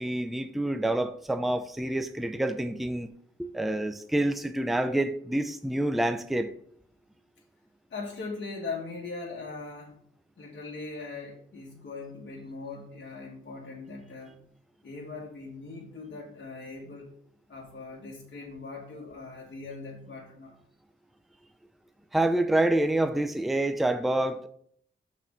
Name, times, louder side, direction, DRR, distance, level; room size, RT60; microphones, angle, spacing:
voice 1, 0.0-3.1 3.4-6.5 22.1-24.5, right 1 dB, ahead, 0.5 m, -27 dB
voice 2, 7.9-10.0 10.4-14.4 14.8-17.1 17.5-20.5, left 3 dB, 60° left, 1.4 m, -40 dB
5.9 x 4.3 x 5.2 m
cardioid pair, 60°, 21 cm